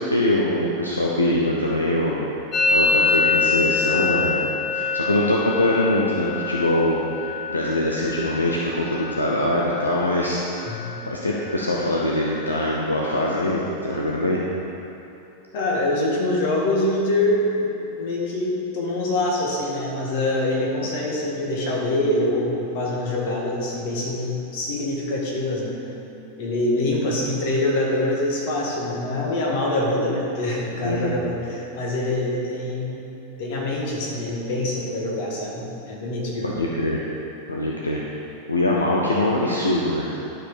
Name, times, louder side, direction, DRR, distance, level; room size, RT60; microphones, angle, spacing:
voice 1, 0.0-10.4 11.1-14.4 30.8-31.2 36.4-37.0 37.5-38.0 38.5-40.1, left 1 dB, 80° left, -3 dB, 0.8 m, -23 dB
Musical instrument, 2.5-10.2 10.4-11.0 11.3-11.9 12.1-14.1, left 4 dB, 25° left, 1.2 m, -26 dB
voice 2, 15.5-25.8 26.4-33.0 33.4-36.5, left 1 dB, 50° left, -3 dB, 1.9 m, -25 dB
11.5 x 5.0 x 5.2 m, 3.0 s
figure-of-eight pair, 90°, 0 cm